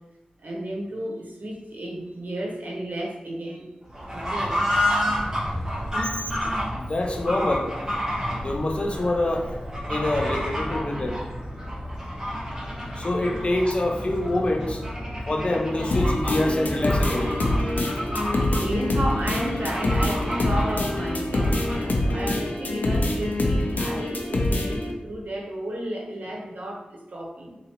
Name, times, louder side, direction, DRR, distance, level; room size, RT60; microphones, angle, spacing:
voice 1, 0.4-3.7 4.1-4.6 18.6-27.6, right 1 dB, 80° right, -1 dB, 0.8 m, -33 dB
Fowl / Bird, 3.9-21.9, equal, 20° right, 1.2 m, -30 dB
voice 2, 6.0-6.5 6.8-7.7 8.4-9.5 9.9-11.2 13.0-17.6, left 1 dB, 40° left, 3 dB, 0.5 m, -26 dB
sound 1, 15.9-24.9, left 1 dB, 90° left, 0.5 m, -25 dB
3.8 x 3.0 x 2.9 m, 1.0 s
wide cardioid pair, 80°, 3 cm